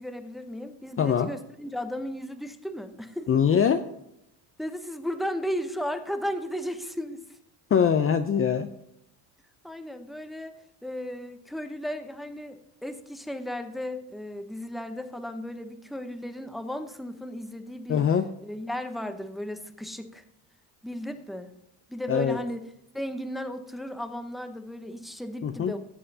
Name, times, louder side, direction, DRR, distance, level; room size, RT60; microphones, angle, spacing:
voice 1, 0.0-3.3 4.6-7.4 9.6-10.5 10.8-18.1 18.4-20.2 20.8-21.5 21.9-22.7 22.9-25.8, equal, ahead, 7 dB, 0.8 m, -35 dB
voice 2, 1.0-1.3 3.3-3.8 7.7-8.7 17.9-18.3 22.1-22.4 25.4-25.8, left 7 dB, 30° left, 8 dB, 0.5 m, -22 dB
17.0 x 7.6 x 2.7 m, 0.79 s
cardioid pair, 105°, 46 cm